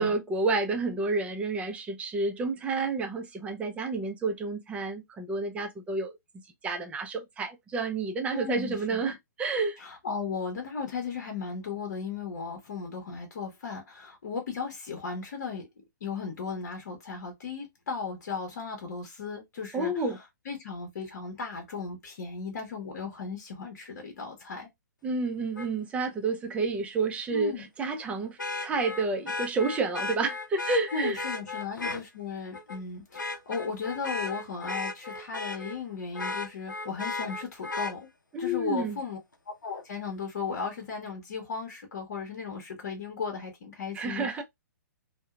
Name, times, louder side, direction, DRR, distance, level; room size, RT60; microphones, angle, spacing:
voice 1, 0.0-6.1 6.6-9.8 19.7-20.2 25.0-31.2 38.3-39.0 43.9-44.4, right 3 dB, 15° right, 0.5 m, -30 dB
voice 2, 8.3-9.2 9.8-15.7 16.0-20.2 20.4-24.7 27.3-27.7 30.9-38.1 38.4-39.2 39.5-44.4, left 5 dB, 60° left, 0.9 m, -36 dB
Vehicle horn car horn honking, 25.6-25.7 28.4-32.0 32.5-32.8 33.1-35.8 36.1-37.9 39.8-39.9, left 3 dB, 85° left, 0.5 m, -35 dB
2.7 x 2.1 x 2.3 m
figure-of-eight pair, 120°, 10 cm